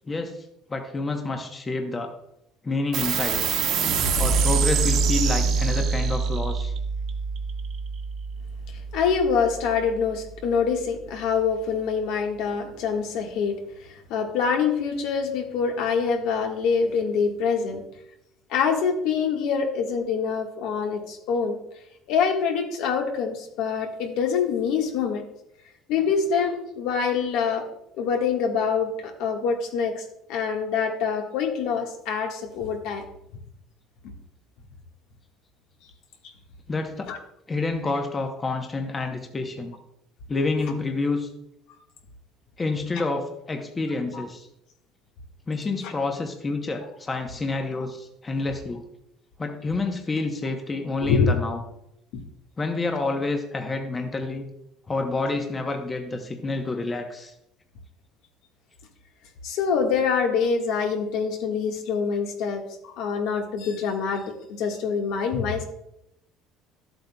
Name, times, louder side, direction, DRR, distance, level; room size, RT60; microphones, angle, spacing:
voice 1, 0.1-0.4 0.7-2.1 2.6-3.4 4.2-6.7 36.7-37.1 37.5-39.7 40.3-41.3 42.6-44.5 45.5-48.8 49.4-51.6 52.6-54.5 54.9-57.3, left 3 dB, 20° left, 4 dB, 0.9 m, -28 dB
sound 1, 2.9-9.8, right 5 dB, 60° right, 1.3 m, -25 dB
voice 2, 8.9-17.8 18.5-21.6 22.1-25.2 25.9-27.6 28.0-30.0 30.3-33.0 34.0-34.1 37.1-37.2 42.9-43.0 44.1-44.2 45.8-45.9 51.0-51.4 52.1-52.2 59.4-64.2 64.5-65.6, left 6 dB, 75° left, 2 dB, 1.6 m, -25 dB
12.5 x 7.9 x 2.3 m, 0.80 s
cardioid pair, 140°, 0 cm